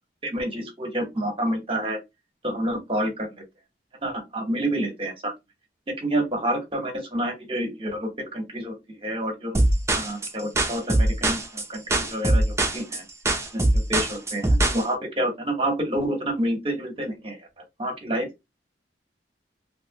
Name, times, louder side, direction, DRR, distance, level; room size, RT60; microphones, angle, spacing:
voice 1, 0.2-2.0 2.4-3.3 4.0-5.3 5.9-9.6 10.0-13.0 13.5-17.5 17.8-18.3, right 1 dB, 30° right, 1.1 m, -28 dB
sound 1, 9.5-14.8, right 1 dB, 15° right, 0.5 m, -22 dB
3.1 x 2.5 x 2.8 m
head